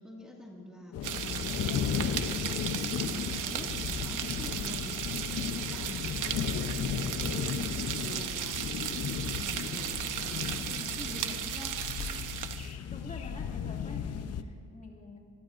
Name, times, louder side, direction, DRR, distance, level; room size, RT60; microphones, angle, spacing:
voice 1, 0.0-5.0 5.3-11.8, left 1 dB, ahead, -3 dB, 2.0 m, -46 dB
sound 1, 0.9-14.4, left 8 dB, 55° left, 0.7 m, -35 dB
sound 2, 1.0-12.7, right 10 dB, 80° right, 1.0 m, -36 dB
voice 2, 12.0-15.2, left 3 dB, 25° left, -1 dB, 2.4 m, -48 dB
26.0 x 22.0 x 2.6 m, 2.2 s
cardioid pair, 145°, 31 cm